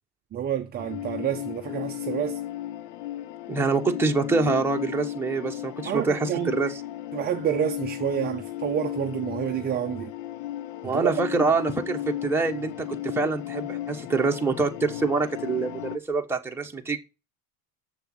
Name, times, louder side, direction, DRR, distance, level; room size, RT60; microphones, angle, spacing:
voice 1, 0.3-2.4 5.9-6.6 7.1-10.1 10.8-11.1 11.4-11.5, right 9 dB, 20° right, 0.5 m, -28 dB
sound 1, 0.8-16.0, left 13 dB, 75° left, 0.8 m, -35 dB
voice 2, 3.5-6.8 10.8-17.0, right 4 dB, 5° right, 1.2 m, -25 dB
7.2 x 6.8 x 7.7 m
cardioid pair, 160°, 46 cm